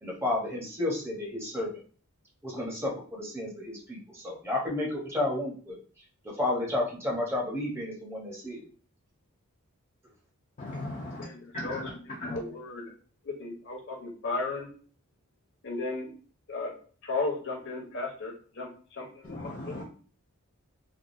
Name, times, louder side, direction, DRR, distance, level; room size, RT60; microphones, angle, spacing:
voice 1, 0.0-1.7 2.4-5.8 6.2-8.6, left 2 dB, 10° right, 0.8 m, -31 dB
voice 2, 10.6-11.2 11.5-11.9 12.2-12.4 19.2-19.8, left 1 dB, 35° left, 0.4 m, -37 dB
voice 3, 11.2-12.8 13.4-14.7 15.6-16.1 16.5-16.7 17.0-19.8, left 3 dB, 55° left, 0.8 m, -35 dB
3.5 x 2.2 x 2.5 m
head